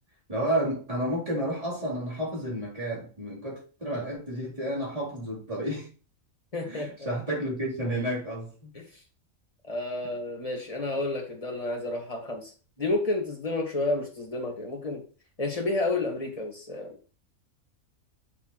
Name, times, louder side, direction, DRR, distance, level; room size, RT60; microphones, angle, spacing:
voice 1, 0.3-5.9 6.6-8.7, right 1 dB, 25° right, 3.8 m, -31 dB
voice 2, 6.5-7.1 8.7-8.8 9.6-12.5 12.8-15.0 15.4-16.9, left 2 dB, 25° left, 2.2 m, -30 dB
8.3 x 7.2 x 3.2 m
omnidirectional pair, 1.5 m